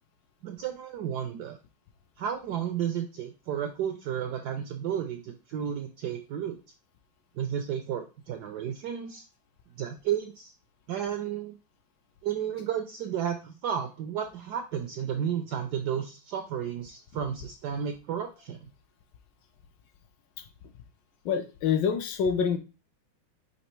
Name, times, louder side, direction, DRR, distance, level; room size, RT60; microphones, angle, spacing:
voice 1, 0.4-1.6 2.2-6.6 7.3-9.2 9.8-10.5 10.9-11.6 12.2-18.7, right 9 dB, 80° right, 6 dB, 0.9 m, -32 dB
voice 2, 21.2-22.6, left 7 dB, 75° left, 6 dB, 1.1 m, -26 dB
4.1 x 2.9 x 4.4 m, 0.32 s
omnidirectional pair, 2.2 m